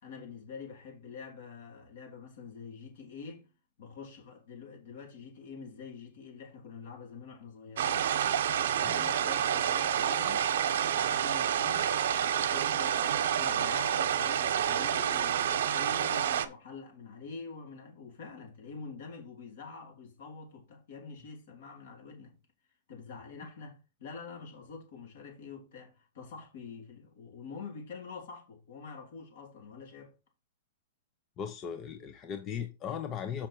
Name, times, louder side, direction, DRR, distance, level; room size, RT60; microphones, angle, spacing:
voice 1, 0.0-3.5 3.8-8.1 8.7-10.5 10.9-11.9 12.4-22.4 22.9-30.1, left 5 dB, 65° left, 3.5 m, -46 dB
sound 1, 7.8-16.5, right 9 dB, 70° right, 1.0 m, -28 dB
voice 2, 31.4-33.5, left 8 dB, 25° left, 0.6 m, -38 dB
6.7 x 5.8 x 4.5 m
hypercardioid pair, 150°, 0 cm